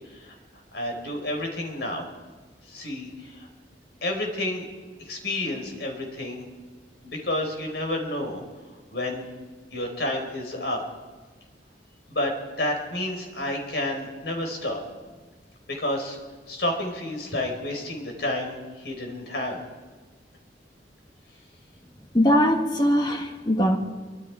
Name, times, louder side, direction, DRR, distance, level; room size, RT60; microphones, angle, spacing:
voice 1, 0.7-2.0 2.7-3.5 4.0-4.7 5.1-6.4 7.0-8.4 8.9-9.3 9.7-10.8 12.1-12.3 12.6-14.8 15.7-16.2 16.5-19.6, left 1 dB, 70° left, 3 dB, 4.7 m, -30 dB
voice 2, 22.1-23.8, equal, 25° left, 4 dB, 1.6 m, -21 dB
25.0 x 24.0 x 4.8 m, 1.3 s
head